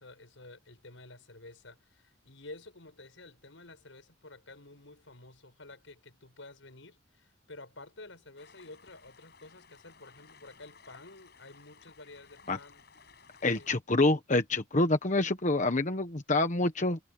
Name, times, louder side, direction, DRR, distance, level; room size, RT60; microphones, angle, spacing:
voice 1, 0.0-12.8 13.4-13.7, left 2 dB, 85° left, 5.7 m, -51 dB
sound 1, 8.4-13.8, left 5 dB, 55° left, 7.8 m, -58 dB
voice 2, 13.4-17.0, left 2 dB, 40° left, 1.2 m, -27 dB
head